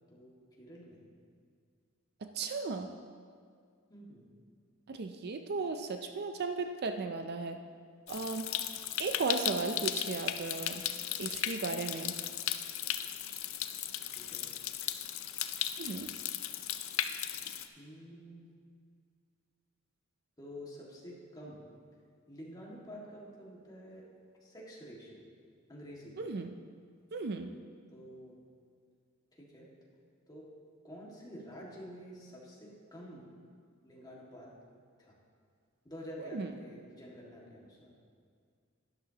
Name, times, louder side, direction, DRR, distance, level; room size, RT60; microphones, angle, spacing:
voice 1, 0.6-1.0 3.9-4.3 14.2-14.5 17.8-18.4 20.4-21.6 22.3-24.1 24.4-25.2 25.7-26.2 27.9-28.4 29.3-29.7 30.3-30.5 30.8-33.3 33.8-34.5 35.0-35.2 35.8-37.9, equal, 20° left, -4 dB, 1.9 m, -49 dB
voice 2, 2.2-2.9 4.9-7.6 8.1-8.5 9.0-10.8 11.2-12.1 15.8-16.1 26.2-26.5 27.1-27.5 36.2-36.5, right 4 dB, 50° right, 7 dB, 0.5 m, -36 dB
Stream, 8.1-17.7, left 11 dB, 65° left, 0.5 m, -36 dB
12.0 x 11.0 x 2.9 m, 2.2 s
head